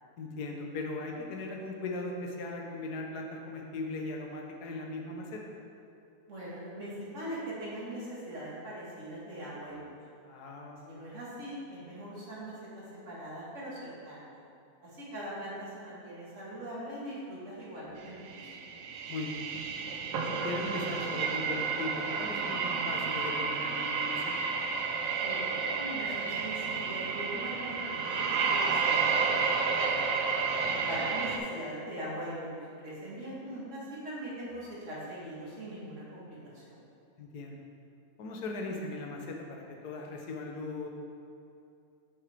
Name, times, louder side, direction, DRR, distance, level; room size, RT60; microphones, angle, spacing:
voice 1, 0.2-5.4 10.2-11.1 19.1-19.5 20.4-24.3 29.9-30.2 37.2-37.6 38.2-40.9, left 2 dB, 90° left, 1 dB, 1.4 m, -39 dB
voice 2, 6.3-9.9 10.8-14.3 14.8-18.5 25.2-29.6 30.7-36.8, right 1 dB, 50° right, -7 dB, 2.0 m, -41 dB
sound 1, 18.2-31.4, right 5 dB, 65° right, 0.9 m, -31 dB
7.7 x 5.9 x 3.3 m, 2.6 s
omnidirectional pair, 1.6 m